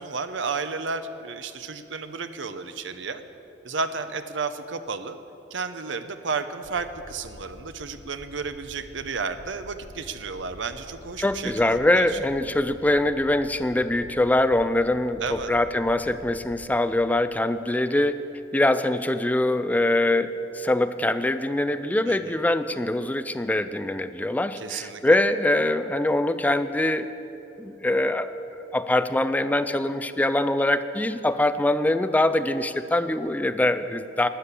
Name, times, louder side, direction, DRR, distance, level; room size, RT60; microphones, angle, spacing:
voice 1, 0.0-3.2 3.6-5.2 5.5-12.1 15.2-15.5 22.1-22.4 24.6-25.0, right 4 dB, 70° right, 10 dB, 0.7 m, -32 dB
sound 1, 6.6-16.6, left 1 dB, 50° left, 0.8 m, -48 dB
voice 2, 11.2-18.2 18.5-27.1 27.6-28.3 28.6-34.3, left 1 dB, 10° left, 11 dB, 0.3 m, -23 dB
12.5 x 10.0 x 8.2 m, 2.9 s
head